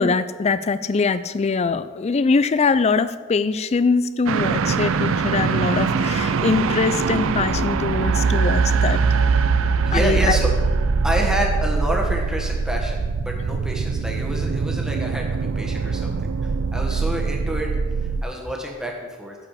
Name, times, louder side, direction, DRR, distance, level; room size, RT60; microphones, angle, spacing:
voice 1, 0.0-9.0 9.9-10.4, left 4 dB, 30° left, 14 dB, 0.3 m, -22 dB
sound 1, 4.3-18.2, right 5 dB, 60° right, 0.4 m, -22 dB
voice 2, 9.8-10.5 11.0-17.7 18.0-19.4, right 1 dB, 5° right, 0 dB, 1.2 m, -28 dB
9.8 x 4.9 x 7.3 m, 1.4 s
head